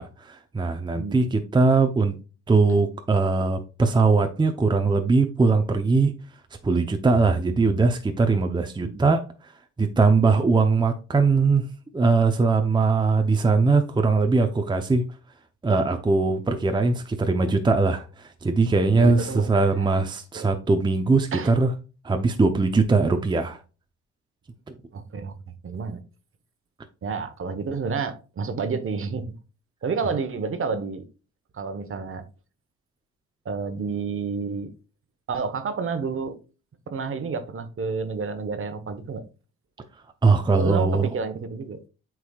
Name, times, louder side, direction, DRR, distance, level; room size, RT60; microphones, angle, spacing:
voice 1, 0.0-2.1 2.5-6.1 6.6-9.2 9.8-11.7 11.9-15.0 15.6-21.7 22.0-23.6 40.2-41.1, right 4 dB, 15° right, 0.7 m, -21 dB
voice 2, 18.9-20.0 20.3-20.5 21.3-21.5 24.9-25.3 25.6-26.0 27.0-29.3 29.8-31.1 31.5-32.3 33.4-34.7 35.3-36.4 36.9-39.3 40.5-41.8, right 5 dB, 45° right, 1.1 m, -30 dB
8.1 x 4.8 x 2.4 m
cardioid pair, 90°, 30 cm